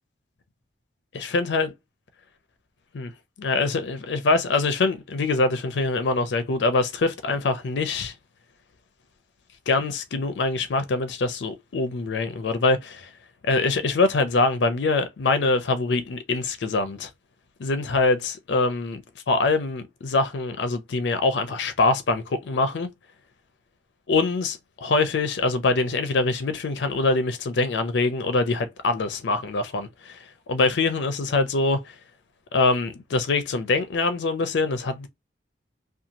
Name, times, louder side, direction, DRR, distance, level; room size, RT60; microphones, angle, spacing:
voice 1, 1.1-1.7 2.9-3.1 3.4-8.1 9.7-13.1 13.4-17.1 17.6-22.9 24.1-32.0 32.5-35.1, left 3 dB, 75° left, 0.5 m, -24 dB
2.8 x 2.3 x 2.5 m
head